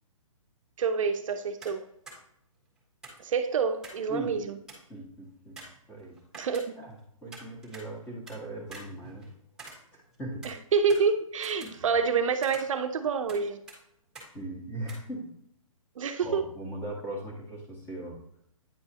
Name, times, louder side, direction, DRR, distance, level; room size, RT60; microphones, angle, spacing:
voice 1, 0.8-1.9 3.2-4.4 6.3-6.7 10.4-13.6 16.0-16.4, right 5 dB, 65° right, 0.6 m, -27 dB
sound 1, 1.6-1.8 2.1-2.2 3.0-4.1 4.4-4.5 4.7-5.0 5.6-7.0 7.3-8.4 8.7-10.2 10.4-12.1 12.4-13.4 13.7-13.8 14.2-14.3 14.9-15.0, right 3 dB, 5° right, 1.6 m, -47 dB
voice 2, 4.1-4.4 4.9-5.6 5.9-6.2 6.8-7.0 7.2-9.3 9.9-10.5 11.6-11.9 14.3-15.4 16.2-18.2, right 1 dB, 10° left, 1.7 m, -39 dB
9.4 x 4.6 x 2.8 m
hypercardioid pair, 150°, 18 cm